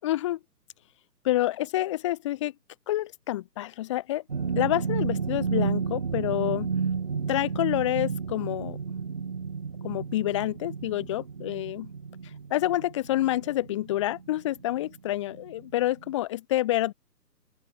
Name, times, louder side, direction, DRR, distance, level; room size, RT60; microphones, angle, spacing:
voice 1, 0.0-0.4 1.2-2.5 2.9-4.2 4.6-6.7 7.3-8.8 9.8-11.9 12.5-16.9, left 15 dB, 20° left, 1.8 m, -28 dB
sound 1, 4.3-15.0 15.3-15.6 16.0-16.1, right 5 dB, 25° right, 0.8 m, -32 dB
open air
hypercardioid pair, 160°, 50 cm